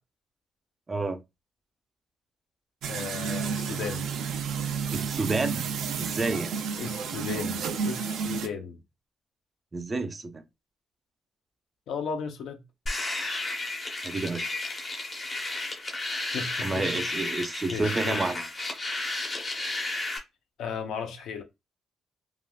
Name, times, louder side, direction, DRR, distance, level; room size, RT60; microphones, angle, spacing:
voice 1, 0.9-1.2 4.9-5.7 6.0-6.5 9.7-10.4 14.0-14.4 16.6-18.4, right 3 dB, 20° right, 0.4 m, -29 dB
sound 1, 2.8-8.5, right 6 dB, 90° right, 0.4 m, -31 dB
voice 2, 2.9-4.0 6.8-8.8 11.9-12.6 16.3-17.4 17.7-18.3 20.6-21.4, left 6 dB, 80° left, 0.7 m, -35 dB
sound 2, 12.9-20.2, left 2 dB, 35° left, 0.8 m, -32 dB
3.3 x 2.4 x 2.3 m
cardioid pair, 155°, 0 cm